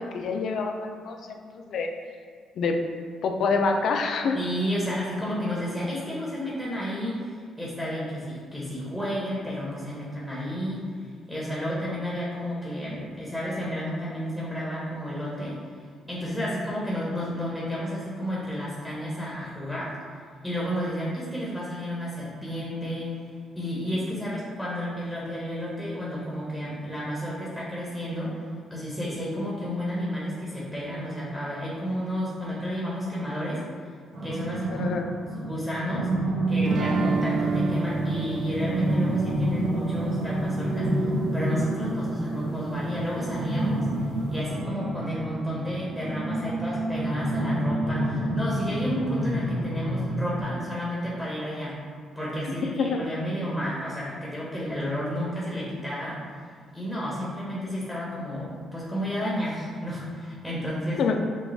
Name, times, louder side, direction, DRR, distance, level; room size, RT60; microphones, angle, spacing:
voice 1, 0.0-1.9 2.6-2.8 3.2-4.4 34.8-35.1 52.4-53.0 61.0-61.2, left 4 dB, 70° left, 4 dB, 0.5 m, -26 dB
voice 2, 4.3-10.8 11.3-15.6 16.1-19.9 20.4-23.1 23.5-28.4 28.7-33.6 34.2-34.9 35.3-36.1 36.5-43.9 44.3-51.8 52.1-56.2 56.7-61.0, equal, 5° left, -7 dB, 1.3 m, -31 dB
sound 1, 34.1-50.4, right 1 dB, 85° right, 1.0 m, -28 dB
sound 2, 36.7-41.6, right 5 dB, 70° right, 0.4 m, -32 dB
6.2 x 2.4 x 3.5 m, 2.1 s
cardioid pair, 90°, 0 cm